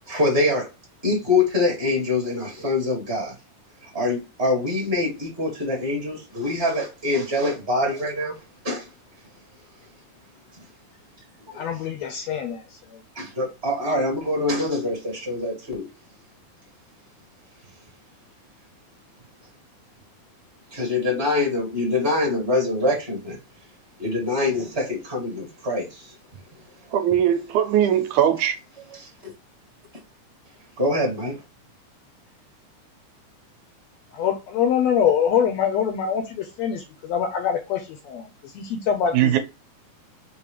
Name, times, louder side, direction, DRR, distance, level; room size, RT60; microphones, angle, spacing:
voice 1, 0.1-0.7 1.0-3.3 3.9-8.3 8.6-8.9 11.5-11.6 13.1-15.9 20.7-23.4 24.0-26.1 28.9-29.3 30.8-31.4, left 2 dB, 25° right, 1.8 m, -24 dB
voice 2, 11.5-12.6 34.1-38.3 38.5-39.4, left 8 dB, 75° left, 1.6 m, -24 dB
voice 3, 26.9-28.6 39.1-39.4, right 10 dB, 85° right, 2.1 m, -20 dB
5.3 x 3.0 x 3.2 m
omnidirectional pair, 3.6 m